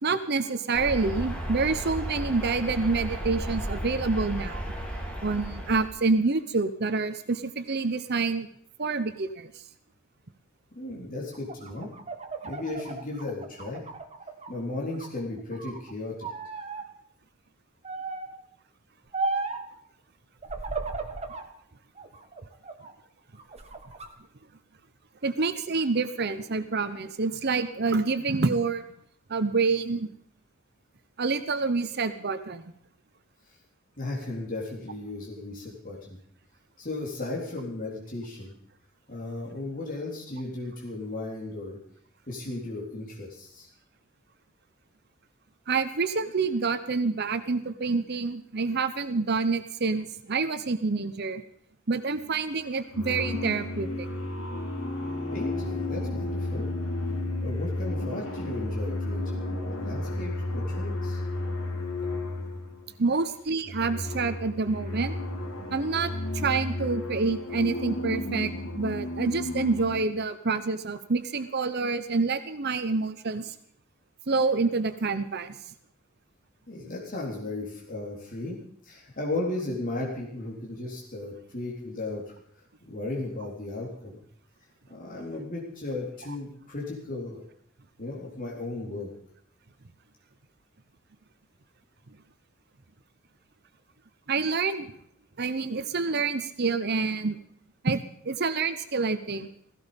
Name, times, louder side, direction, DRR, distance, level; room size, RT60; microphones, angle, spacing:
voice 1, 0.0-4.6 5.2-8.5 8.8-9.6 25.2-28.9 29.3-30.1 31.2-32.6 45.7-51.4 51.9-54.1 63.0-65.1 65.7-68.5 68.8-73.5 74.3-75.7 94.3-94.9 95.4-97.4 97.8-98.0 98.2-99.5, right 4 dB, 50° right, 11 dB, 0.9 m, -27 dB
sound 1, 0.7-5.9, equal, 5° left, 3.5 m, -34 dB
voice 2, 10.7-11.9 12.4-13.8 14.5-16.3 34.0-36.2 36.8-38.6 39.1-41.8 42.3-43.7 55.3-56.7 57.4-59.5 59.8-61.2 76.7-82.3 82.9-84.2 84.9-87.4 88.0-89.1, left 2 dB, 40° left, -3 dB, 3.8 m, -35 dB
sound 2, 11.3-14.6 14.9-15.8 16.2-16.9 17.8-18.4 19.1-19.7 20.4-21.5 22.0-22.9 23.4-24.1, right 3 dB, 30° right, 1.7 m, -35 dB
sound 3, 52.2-52.5 52.9-62.9 63.5-70.1, left 2 dB, 85° left, 3.0 m, -32 dB
16.5 x 16.0 x 5.3 m, 0.67 s
head